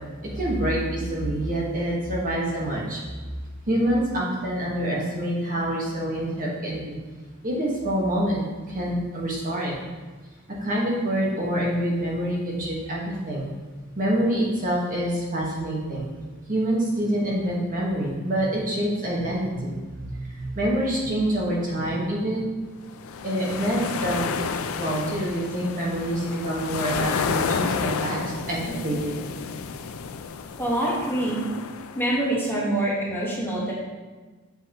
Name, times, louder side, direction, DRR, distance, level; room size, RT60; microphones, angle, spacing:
voice 1, 0.2-3.0 3.7-7.0 7.4-8.4 8.7-9.7 10.5-13.4 14.0-16.1 16.5-22.4 23.2-24.3 24.8-28.2 28.5-29.2, right 1 dB, 40° right, -4 dB, 1.5 m, -26 dB
sound 1, 22.9-32.2, left 5 dB, 80° left, 0.4 m, -31 dB
voice 2, 30.6-31.4 31.9-33.7, right 1 dB, 10° left, -6 dB, 1.4 m, -25 dB
7.7 x 5.4 x 3.0 m, 1.3 s
head